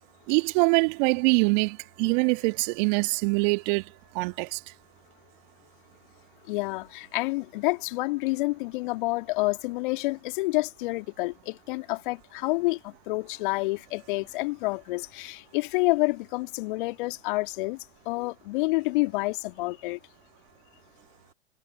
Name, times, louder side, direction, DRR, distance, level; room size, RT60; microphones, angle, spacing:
voice 1, 0.3-3.8 4.2-4.6, right 34 dB, 40° right, 1.6 m, -24 dB
voice 2, 6.5-17.8 18.1-20.0, left 23 dB, 45° left, 2.3 m, -28 dB
figure-of-eight pair, 105°, 34 cm